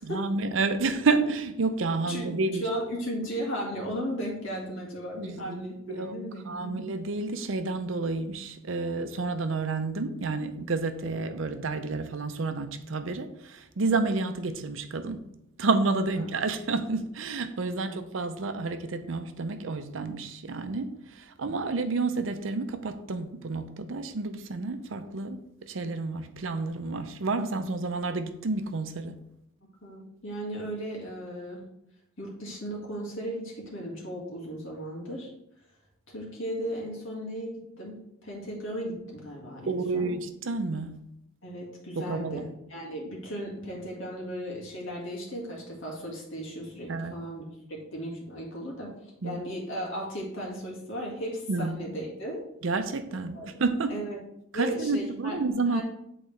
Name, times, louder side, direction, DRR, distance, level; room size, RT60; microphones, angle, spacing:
voice 1, 0.0-2.7 5.2-5.6 5.9-6.1 6.5-15.2 15.6-29.2 39.7-41.0 42.0-42.5 46.9-47.1 49.2-49.4 51.5-51.7 52.6-53.9 54.5-55.8, right 3 dB, 70° right, 0.6 m, -30 dB
voice 2, 2.0-6.8 16.1-16.3 17.6-18.0 29.8-31.6 32.2-35.3 36.1-40.1 41.4-47.4 47.7-48.9 49.2-52.4 53.3-53.6 53.9-54.2 54.5-55.4 55.7-55.8, equal, 70° left, 2.0 m, -36 dB
8.5 x 3.9 x 3.2 m
head